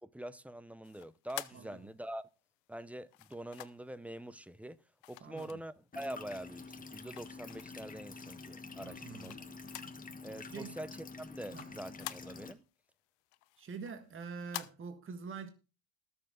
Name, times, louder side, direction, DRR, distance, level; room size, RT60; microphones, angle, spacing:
voice 1, 0.0-2.3 2.7-4.8 5.1-9.3 10.2-12.6, right 1 dB, 5° right, 0.6 m, -45 dB
sound 1, 0.8-2.3 3.1-4.0 5.0-6.1 6.5-7.9 8.4-10.1 10.3-10.4 10.8-12.7 13.1-14.7, left 19 dB, 75° left, 1.0 m, -48 dB
voice 2, 5.2-5.6 8.8-9.4 10.5-10.7 11.5-11.7 13.6-15.5, right 5 dB, 25° right, 1.7 m, -45 dB
sound 2, 5.9-12.5, left 4 dB, 20° left, 1.3 m, -48 dB
20.5 x 7.1 x 3.8 m
supercardioid pair, 100°, 46 cm